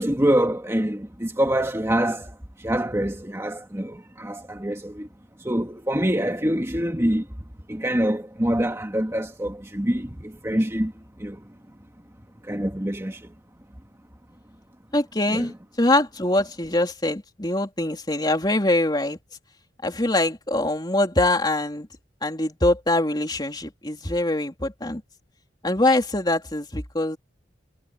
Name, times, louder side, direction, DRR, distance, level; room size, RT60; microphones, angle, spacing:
voice 1, 0.0-5.1 5.4-7.3 7.7-10.9 11.2-11.4 12.4-13.3 15.3-15.5, right 1 dB, 15° right, 1.9 m, -25 dB
voice 2, 14.9-19.2 19.8-21.9 22.2-25.0 25.6-27.2, left 1 dB, 20° left, 3.4 m, -23 dB
head